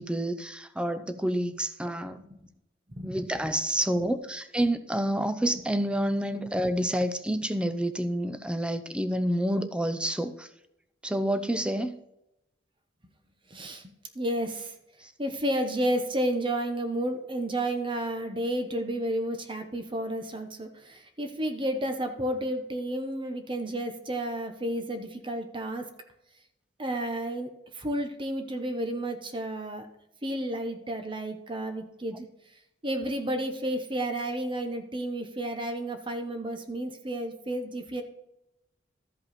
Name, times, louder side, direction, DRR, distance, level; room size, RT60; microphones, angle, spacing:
voice 1, 0.0-2.2 3.0-10.5 11.0-12.0 15.0-15.1, right 1 dB, 5° right, 9 dB, 0.5 m, -28 dB
voice 2, 2.2-2.5 2.9-3.2 13.5-13.8 14.1-14.7 15.2-25.9 26.8-27.5 27.7-29.9 30.2-32.3 32.8-38.0, right 1 dB, 30° right, 7 dB, 0.9 m, -31 dB
13.0 x 5.4 x 4.2 m, 0.85 s
head